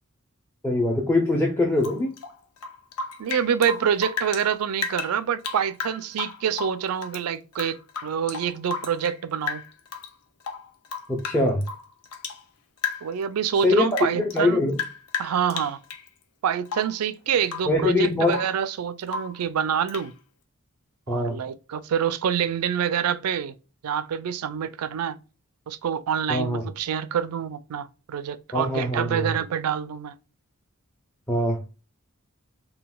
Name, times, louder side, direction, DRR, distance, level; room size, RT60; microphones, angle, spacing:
voice 1, 0.6-2.1 11.1-11.6 13.6-14.8 17.7-18.4 21.1-21.4 26.3-26.6 28.5-29.3 31.3-31.6, left 2 dB, 10° left, 0.5 m, -23 dB
Rain / Drip, 1.8-4.5 4.8-7.2 7.5-9.2 9.5-10.1 10.4-12.4 12.8-13.2 13.6-16.1 16.7-17.0 17.4-17.8 18.0-18.6 19.1-19.4 19.9-20.1, left 5 dB, 85° left, 0.6 m, -34 dB
voice 2, 3.2-9.6 13.0-14.6 15.2-15.8 16.4-20.1 21.1-23.5 23.8-25.2 25.7-30.1, right 8 dB, 80° right, 0.4 m, -26 dB
3.8 x 2.2 x 2.2 m
head